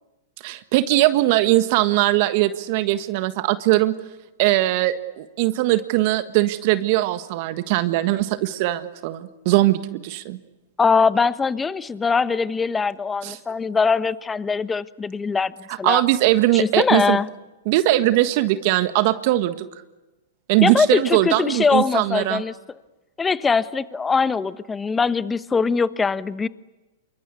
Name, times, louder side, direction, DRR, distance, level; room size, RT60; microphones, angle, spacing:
voice 1, 0.4-4.0 4.4-10.4 13.2-13.4 15.8-17.2 17.6-19.6 20.5-22.4, right 16 dB, 50° right, 10 dB, 1.5 m, -20 dB
voice 2, 10.8-15.5 15.8-16.0 16.5-17.3 20.6-22.5 23.2-26.5, left 5 dB, 15° left, 15 dB, 1.1 m, -22 dB
28.0 x 24.5 x 8.4 m, 1.1 s
hypercardioid pair, 110°, 0 cm